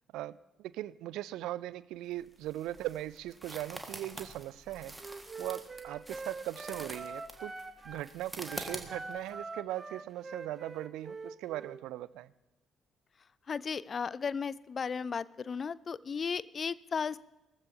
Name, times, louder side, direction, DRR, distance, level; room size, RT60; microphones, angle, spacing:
voice 1, 0.1-5.0 5.4-7.5 7.8-12.3, right 14 dB, 65° right, 19 dB, 0.3 m, -39 dB
sound 1, 2.1-9.3, right 1 dB, 10° right, 1.8 m, -46 dB
Wind instrument woodwind instrument, 5.0-8.1 8.4-11.8, right 3 dB, 30° right, 1.1 m, -44 dB
voice 2, 13.5-17.2, left 6 dB, 40° left, 20 dB, 0.4 m, -35 dB
18.5 x 14.5 x 2.9 m, 1.0 s
figure-of-eight pair, 45°, 0 cm